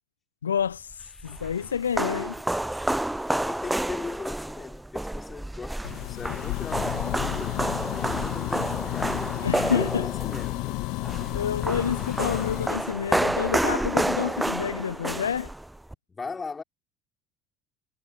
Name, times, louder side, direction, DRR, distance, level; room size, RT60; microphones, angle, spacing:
voice 1, 0.4-2.3 9.4-10.1 11.3-15.5, left 7 dB, 80° left, 0.9 m, -28 dB
sound 1, 0.9-15.9, right 1 dB, 5° right, 0.6 m, -30 dB
voice 2, 3.3-9.3 9.6-10.8 16.1-16.6, left 4 dB, 25° left, 5.6 m, -38 dB
sound 2, 5.8-12.7, left 24 dB, 60° left, 2.8 m, -31 dB
figure-of-eight pair, 60°, 0 cm